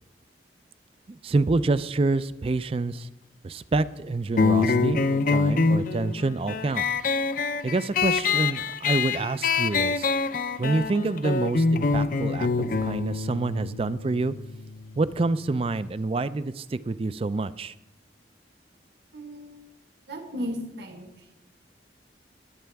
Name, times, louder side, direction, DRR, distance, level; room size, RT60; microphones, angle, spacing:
voice 1, 1.1-3.1 3.4-6.8 7.6-10.1 10.6-14.3 15.0-17.7, right 3 dB, 30° right, 15 dB, 0.4 m, -27 dB
sound 1, 4.4-15.5, left 4 dB, 50° left, 0.5 m, -25 dB
voice 2, 19.1-19.7 20.1-21.1, equal, 60° right, 4 dB, 1.5 m, -35 dB
20.0 x 8.7 x 3.4 m, 0.94 s
head